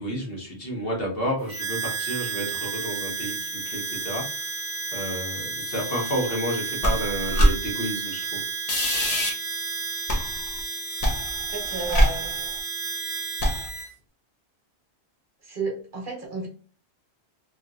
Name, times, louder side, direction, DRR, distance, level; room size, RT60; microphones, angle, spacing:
voice 1, 0.0-3.4 3.7-4.2 4.9-8.4, equal, 60° left, -1 dB, 1.3 m, -30 dB
Harmonica, 1.5-13.9, right 4 dB, 75° right, 1.0 m, -32 dB
sound 1, 6.8-7.5 8.7-9.3 10.1-10.6 11.0-12.6 13.4-13.7, equal, 40° left, 0.8 m, -23 dB
voice 2, 11.5-12.5 15.4-16.5, right 4 dB, 50° right, -1 dB, 1.2 m, -33 dB
3.1 x 2.8 x 2.4 m, 0.42 s
omnidirectional pair, 1.1 m